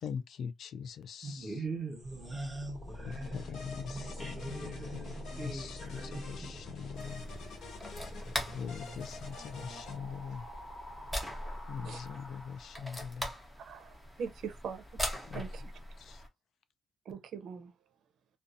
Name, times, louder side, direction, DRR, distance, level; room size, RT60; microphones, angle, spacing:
voice 1, 0.0-1.6 3.1-5.2 5.4-7.2 8.3-10.5 11.7-13.3 15.3-15.4 16.0-16.2, left 7 dB, 60° left, 0.3 m, -42 dB
voice 2, 1.2-6.6, right 3 dB, 15° right, 1.0 m, -42 dB
sound 1, 2.0-13.0, left 1 dB, 25° left, 1.0 m, -47 dB
sound 2, 3.1-10.0, left 3 dB, 75° left, 1.0 m, -47 dB
sound 3, 6.9-16.3, equal, 5° left, 0.6 m, -42 dB
voice 3, 13.7-14.8 15.3-15.6 17.1-17.7, right 6 dB, 65° right, 0.5 m, -41 dB
2.6 x 2.2 x 2.4 m
cardioid pair, 175°, 0 cm